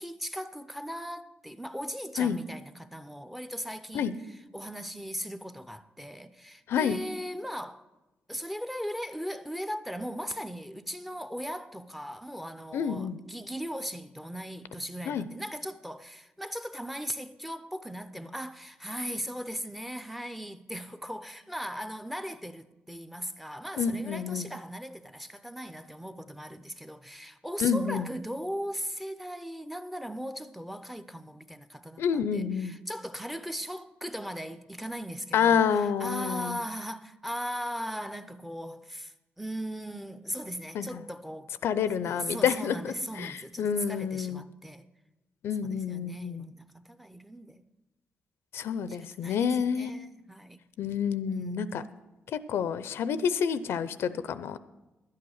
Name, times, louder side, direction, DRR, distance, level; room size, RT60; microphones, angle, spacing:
voice 1, 0.0-4.1 4.5-7.9 8.3-41.6 42.0-44.9 45.6-47.6 48.9-50.6 51.3-51.9, equal, 5° right, 0.5 m, -38 dB
voice 2, 6.7-7.0 12.7-13.2 15.1-15.3 23.8-24.5 27.6-28.1 32.0-32.7 35.3-36.6 40.7-41.0 41.6-44.4 45.4-46.5 48.5-49.9 50.8-51.8 52.3-54.6, left 7 dB, 80° left, 0.5 m, -28 dB
11.5 x 8.6 x 6.4 m
cardioid pair, 120°, 4 cm